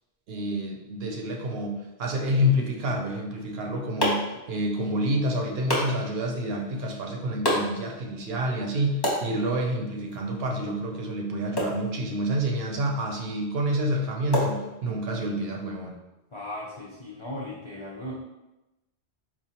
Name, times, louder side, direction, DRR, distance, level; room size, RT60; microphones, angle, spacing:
voice 1, 0.3-15.9, equal, 70° right, 1 dB, 0.8 m, -28 dB
sound 1, 3.3-15.3, equal, 25° left, 0.7 m, -34 dB
voice 2, 16.3-18.2, left 1 dB, 50° left, -5 dB, 0.3 m, -37 dB
4.3 x 2.3 x 2.8 m, 0.99 s
omnidirectional pair, 1.1 m